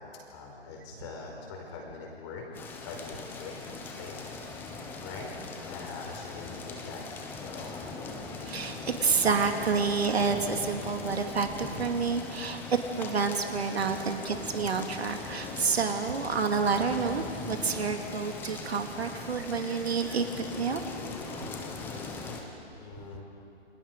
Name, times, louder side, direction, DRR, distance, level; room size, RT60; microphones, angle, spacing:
voice 1, 0.3-2.6 2.8-3.6 4.0-4.3 5.0-5.3 5.6-7.0 7.4-7.7 13.8-14.0 22.8-23.2, left 4 dB, 25° left, 0 dB, 5.1 m, -43 dB
sound 1, 2.5-22.4, left 4 dB, 5° left, 1.0 m, -40 dB
voice 2, 8.4-20.3 20.6-20.8 21.4-21.5, right 5 dB, 65° right, 4 dB, 2.6 m, -29 dB
29.5 x 26.5 x 5.4 m, 2.6 s
hypercardioid pair, 155°, 34 cm